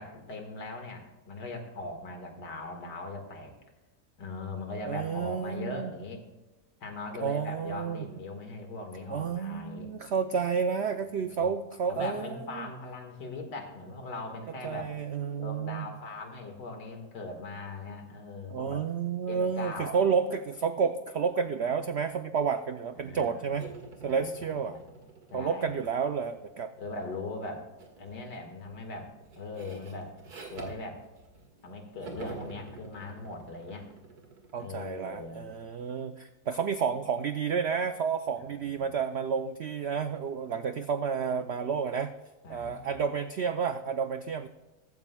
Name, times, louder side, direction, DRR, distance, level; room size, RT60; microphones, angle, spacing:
voice 1, 0.0-3.5 4.2-6.2 6.8-9.9 11.1-11.5 11.8-14.9 15.4-18.8 19.3-20.0 22.9-23.5 24.0-24.8 25.3-25.8 26.8-27.7 28.0-29.1 29.4-30.2 30.5-31.0 31.6-33.9 34.6-35.5 38.6-38.8 42.4-43.0, left 2 dB, 85° left, 4 dB, 2.4 m, -40 dB
voice 2, 4.9-5.9 7.2-8.1 9.1-12.7 14.6-15.8 18.5-23.7 24.0-24.8 25.3-26.7 34.5-42.1 42.5-44.5, right 6 dB, 85° right, 9 dB, 0.5 m, -30 dB
sound 1, 23.6-26.9 27.8-28.1 28.4-31.7 32.0-35.6, right 4 dB, 65° right, 2.3 m, -47 dB
15.0 x 13.5 x 2.2 m, 1.1 s
omnidirectional pair, 1.8 m